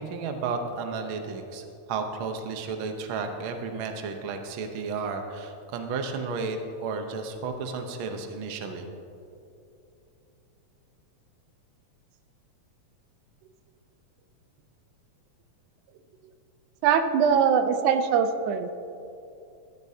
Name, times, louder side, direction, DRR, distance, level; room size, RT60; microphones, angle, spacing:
voice 1, 0.0-8.9, right 4 dB, 65° right, 5 dB, 1.3 m, -33 dB
voice 2, 16.8-18.7, right 7 dB, 90° right, 8 dB, 2.2 m, -22 dB
15.0 x 13.5 x 2.8 m, 2.7 s
omnidirectional pair, 3.4 m